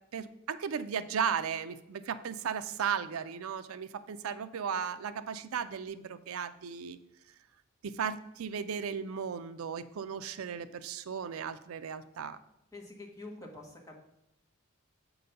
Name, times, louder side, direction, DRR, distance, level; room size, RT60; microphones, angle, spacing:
voice 1, 0.1-7.0 7.8-12.4, right 7 dB, 85° right, 12 dB, 0.4 m, -35 dB
voice 2, 12.7-14.0, left 2 dB, 15° left, -2 dB, 1.3 m, -46 dB
7.5 x 3.9 x 5.7 m, 0.90 s
head